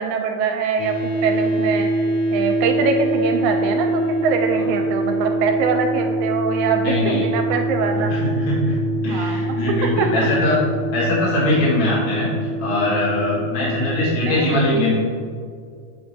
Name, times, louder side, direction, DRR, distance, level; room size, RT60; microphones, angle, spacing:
voice 1, 0.0-2.1 2.3-8.1 9.1-10.3 14.3-15.0, right 5 dB, 80° right, 4 dB, 1.9 m, -23 dB
sound 1, 0.8-14.3, right 1 dB, 70° left, 1.4 m, -24 dB
voice 2, 6.8-7.2 8.0-8.8 9.0-10.6 10.9-15.0, left 1 dB, 50° left, -7 dB, 2.1 m, -21 dB
8.1 x 4.9 x 2.6 m, 2.2 s
omnidirectional pair, 3.5 m